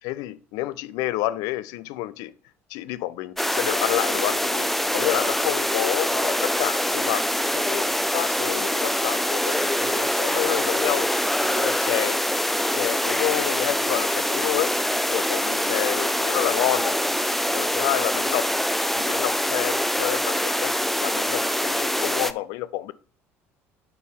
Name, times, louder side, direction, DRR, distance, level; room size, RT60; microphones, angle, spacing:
voice 1, 0.0-2.3 2.7-7.2 7.5-7.9 8.1-11.1 11.4-12.2 12.7-14.8 15.1-17.0 17.5-18.5 18.9-22.9, left 15 dB, 60° left, 0.5 m, -29 dB
sound 1, 3.4-22.3, equal, 5° left, 0.5 m, -24 dB
8.0 x 4.6 x 3.6 m
figure-of-eight pair, 60°, 7 cm